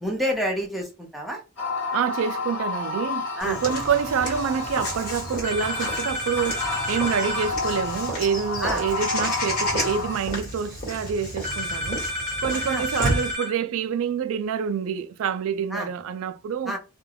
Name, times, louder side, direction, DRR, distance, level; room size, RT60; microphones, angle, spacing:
voice 1, 0.0-1.4 3.4-3.6 8.6-8.8 12.5-12.8 15.7-15.9 16.7-16.8, equal, ahead, 0.6 m, -28 dB
sound 1, 1.6-10.2, left 3 dB, 60° left, 1.1 m, -31 dB
voice 2, 1.9-12.1 12.4-16.8, right 7 dB, 65° right, 0.3 m, -27 dB
Walk footsteps / Bird vocalization bird call bird song, 3.4-13.3, equal, 45° left, 1.3 m, -32 dB
sound 2, 5.4-7.5 11.4-13.5, left 1 dB, 40° right, 0.8 m, -30 dB
2.3 x 2.2 x 3.3 m
head